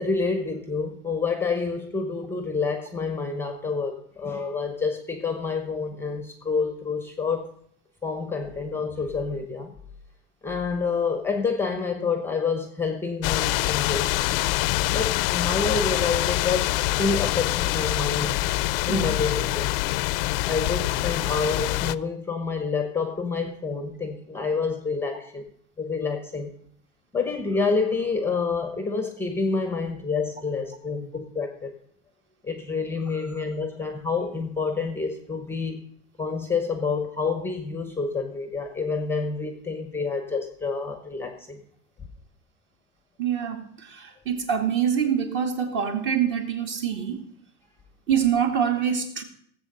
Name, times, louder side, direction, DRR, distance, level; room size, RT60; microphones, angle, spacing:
voice 1, 0.0-7.5 8.0-9.7 10.4-14.1 14.9-18.3 18.9-19.7 20.5-25.5 25.8-26.5 27.1-31.7 32.4-35.8 36.2-41.6, left 4 dB, 5° left, 0.8 m, -28 dB
sound 1, 13.2-21.9, left 18 dB, 60° left, 0.5 m, -25 dB
voice 2, 43.2-47.2 48.1-49.2, right 8 dB, 35° right, 2.2 m, -25 dB
17.0 x 7.7 x 6.5 m
cardioid pair, 165°, 31 cm